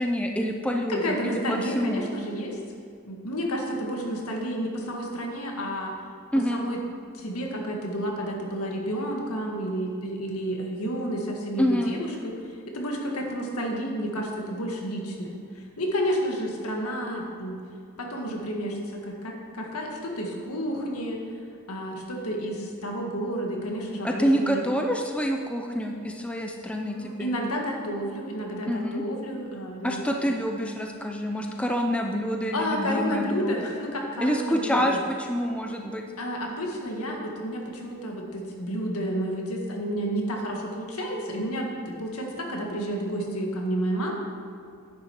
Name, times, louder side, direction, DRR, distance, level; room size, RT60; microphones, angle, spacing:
voice 1, 0.0-2.1 6.3-6.6 11.6-12.0 24.0-27.4 28.7-29.0 29.8-33.6 34.2-36.0, equal, 5° left, 2 dB, 0.5 m, -27 dB
voice 2, 0.9-2.6 3.1-5.9 6.5-6.8 7.2-12.3 12.7-15.4 15.8-17.5 18.0-18.8 19.1-21.2 21.7-24.6 26.9-30.1 32.5-35.0 36.2-44.2, equal, 80° left, 0 dB, 1.8 m, -30 dB
10.0 x 9.6 x 4.5 m, 2.4 s
head